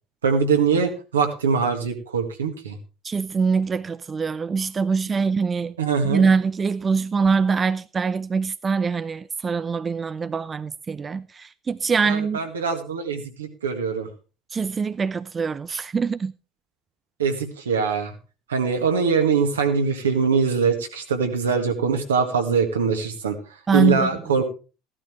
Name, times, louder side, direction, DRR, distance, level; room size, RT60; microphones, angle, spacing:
voice 1, 0.2-2.8 5.8-6.3 12.0-14.1 17.2-18.2 18.5-23.4 23.7-24.4, right 5 dB, 85° right, 1.8 m, -22 dB
voice 2, 3.0-5.7 6.0-12.4 14.5-16.3 23.7-24.1, right 5 dB, 30° right, 0.5 m, -23 dB
15.0 x 12.0 x 3.2 m
hypercardioid pair, 65°, 0 cm